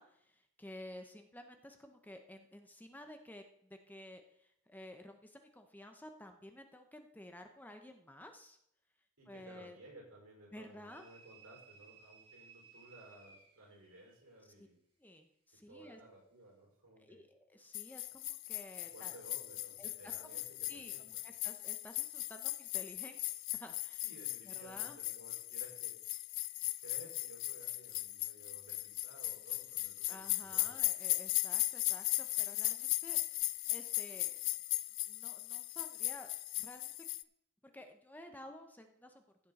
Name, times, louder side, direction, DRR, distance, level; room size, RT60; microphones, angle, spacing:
voice 1, 0.0-8.6 9.3-9.8 10.5-11.1 14.6-14.7 15.0-16.0 17.0-19.2 19.8-20.4 20.7-24.1 24.5-25.0 30.1-34.6 35.1-36.3 36.6-36.9 37.6-39.2, left 1 dB, 10° left, 6 dB, 0.7 m, -53 dB
voice 2, 9.2-14.8 15.7-17.3 18.8-21.2 24.0-25.9 26.8-30.8, right 1 dB, 70° right, -2 dB, 5.2 m, -57 dB
sound 1, 10.9-14.2, right 5 dB, 25° right, 2.8 m, -60 dB
sound 2, 17.7-37.2, left 18 dB, 60° left, 0.4 m, -38 dB
15.5 x 7.2 x 4.1 m, 0.74 s
head